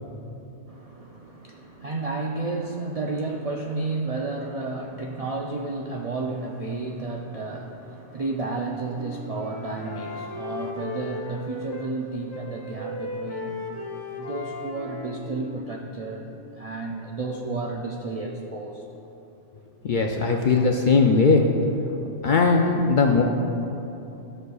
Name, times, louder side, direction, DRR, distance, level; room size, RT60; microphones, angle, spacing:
voice 1, 0.7-13.7 14.1-18.8 20.3-20.6, right 3 dB, 60° right, -1 dB, 0.4 m, -32 dB
Wind instrument woodwind instrument, 8.4-12.0 12.3-16.3, left 2 dB, 35° left, 0.9 m, -37 dB
voice 2, 19.8-21.4 22.2-23.2, left 4 dB, 60° left, 2 dB, 0.5 m, -19 dB
13.0 x 6.5 x 2.3 m, 2.9 s
omnidirectional pair, 1.2 m